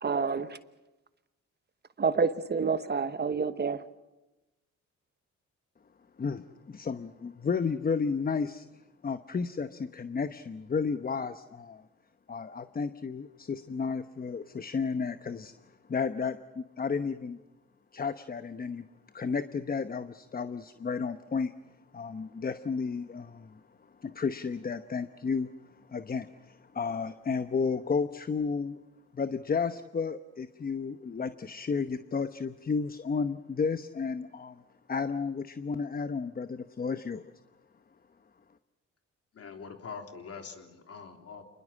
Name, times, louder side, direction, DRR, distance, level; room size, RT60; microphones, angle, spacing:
voice 1, 0.0-0.6 2.0-3.8, right 5 dB, 35° right, 12 dB, 1.1 m, -28 dB
voice 2, 6.2-8.7 9.0-11.8 12.3-15.5 15.9-17.4 17.9-18.9 19.1-21.5 21.9-23.6 24.0-28.8 29.1-34.6 34.9-37.2, left 5 dB, 30° left, 11 dB, 1.0 m, -32 dB
voice 3, 39.3-41.4, left 5 dB, 50° left, 4 dB, 3.5 m, -44 dB
27.5 x 21.0 x 7.5 m, 1.0 s
cardioid pair, 90°, 30 cm